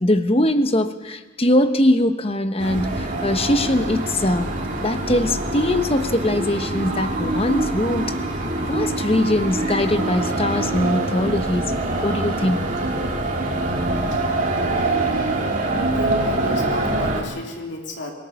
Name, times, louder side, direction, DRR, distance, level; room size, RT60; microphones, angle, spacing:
voice 1, 0.0-8.1 8.7-11.7 12.0-12.6, left 1 dB, 30° left, 9 dB, 1.1 m, -21 dB
sound 1, 2.6-17.2, right 2 dB, 40° right, 3.3 m, -24 dB
voice 2, 15.9-18.1, right 1 dB, 60° left, 1 dB, 3.3 m, -32 dB
27.0 x 18.5 x 7.1 m, 1.2 s
head